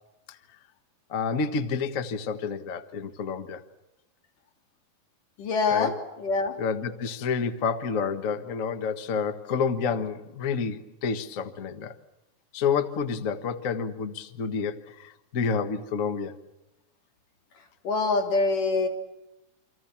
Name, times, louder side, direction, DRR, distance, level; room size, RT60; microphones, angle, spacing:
voice 1, 1.1-3.6 5.7-5.9 6.6-11.9 12.5-16.4, left 5 dB, 40° left, 1.2 m, -29 dB
voice 2, 5.4-5.9 6.2-6.6 17.8-18.9, left 4 dB, 90° left, 4.7 m, -24 dB
29.0 x 27.0 x 7.3 m
omnidirectional pair, 3.6 m